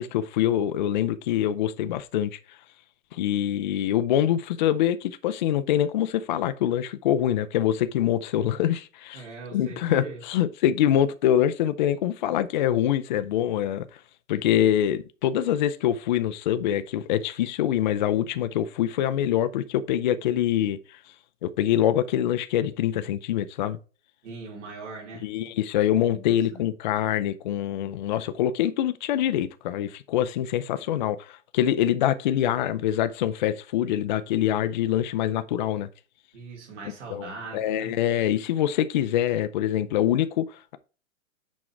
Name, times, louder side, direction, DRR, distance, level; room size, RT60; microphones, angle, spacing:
voice 1, 0.0-2.4 3.1-9.2 9.5-14.0 14.3-21.0 21.4-23.8 25.2-35.9 37.1-40.8, left 11 dB, 35° left, 0.5 m, -25 dB
voice 2, 9.1-10.2 14.6-14.7 24.2-25.3 26.1-26.6 36.3-37.9, right 3 dB, 65° right, 3.0 m, -40 dB
6.3 x 4.7 x 4.4 m
hypercardioid pair, 140°, 39 cm